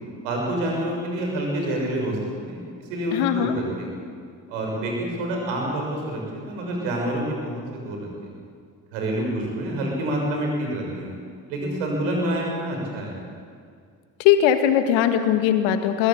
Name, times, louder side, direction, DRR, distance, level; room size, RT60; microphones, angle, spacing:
voice 1, 0.2-2.6 2.9-3.9 4.5-6.2 6.4-8.3 8.9-11.1 11.5-13.2, right 1 dB, 85° right, 0 dB, 6.4 m, -27 dB
voice 2, 3.1-3.6 14.2-16.1, left 10 dB, 75° left, 8 dB, 2.0 m, -20 dB
22.0 x 16.5 x 8.7 m, 2.2 s
hypercardioid pair, 60°, 46 cm